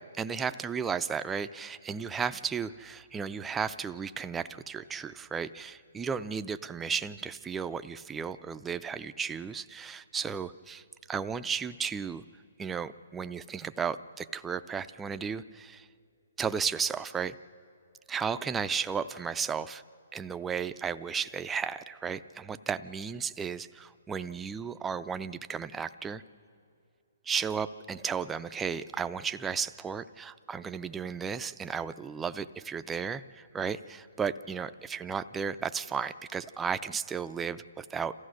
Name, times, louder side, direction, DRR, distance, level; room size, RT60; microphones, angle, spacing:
voice 1, 0.0-12.2 12.6-15.9 16.4-17.4 18.1-19.8 20.1-26.2 27.3-38.1, right 6 dB, 10° right, 11 dB, 0.4 m, -34 dB
27.5 x 15.0 x 6.4 m, 2.5 s
hypercardioid pair, 150°, 0 cm